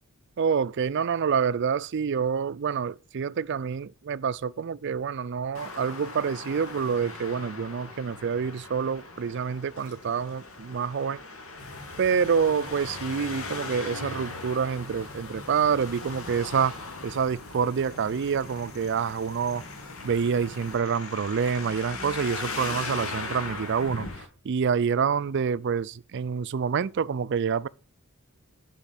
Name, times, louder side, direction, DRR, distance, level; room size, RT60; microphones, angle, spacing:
voice 1, 0.4-11.2 12.0-16.7 17.0-19.6 20.0-24.1 24.4-27.7, right 6 dB, 55° right, 0.4 m, -27 dB
Traffic noise roadway noise, 5.5-24.2, left 3 dB, 80° left, 2.3 m, -39 dB
sound 1, 11.6-20.8, left 1 dB, 50° left, 3.0 m, -48 dB
10.5 x 5.0 x 7.2 m
head